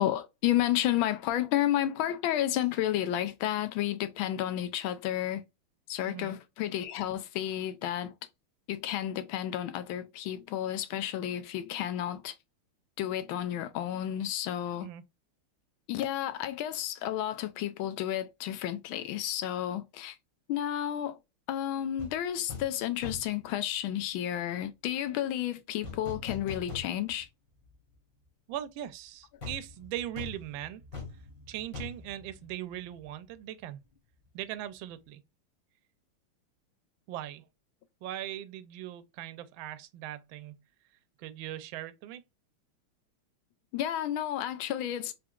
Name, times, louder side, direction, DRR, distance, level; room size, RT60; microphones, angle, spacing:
voice 1, 0.0-5.4 5.9-8.1 8.7-12.3 13.0-14.9 15.9-20.2 20.5-21.2 21.5-27.3 43.7-45.1, left 12 dB, 75° left, 1.3 m, -31 dB
sound 1, 22.0-22.2 22.5-22.8 23.0-23.4 25.8-27.3 27.6-27.7 29.4-33.1 33.3-33.5, left 4 dB, 40° left, 1.8 m, -42 dB
voice 2, 28.5-30.8 31.5-33.8 34.3-35.2 37.1-37.4 38.0-40.6 41.2-42.2, right 12 dB, 75° right, 1.2 m, -39 dB
3.7 x 3.6 x 2.3 m
omnidirectional pair, 2.4 m